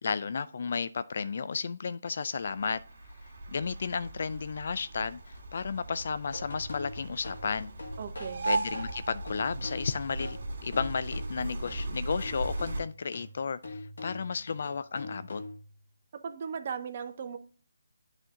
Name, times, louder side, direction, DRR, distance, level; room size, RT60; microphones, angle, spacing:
voice 1, 0.0-2.8 3.5-7.7 8.4-10.4 10.6-15.4, left 5 dB, 55° left, 0.3 m, -33 dB
sound 1, 2.4-12.8, right 2 dB, 55° right, 2.3 m, -38 dB
sound 2, 6.2-11.9 12.2-15.8, left 2 dB, 70° left, 2.1 m, -44 dB
voice 2, 8.0-8.5 16.1-17.4, right 6 dB, 40° right, 0.7 m, -37 dB
8.8 x 4.2 x 3.7 m
figure-of-eight pair, 160°, 0 cm